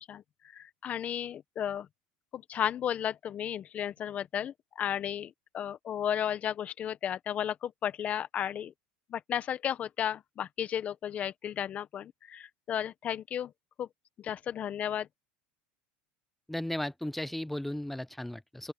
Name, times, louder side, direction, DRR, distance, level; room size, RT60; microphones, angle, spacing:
voice 1, 0.5-1.9 2.3-8.7 9.1-13.5 13.8-13.9 14.2-15.1, left 9 dB, 35° left, 1.4 m, -34 dB
voice 2, 16.5-18.7, left 1 dB, 5° left, 0.7 m, -35 dB
open air
supercardioid pair, 125°, 4 cm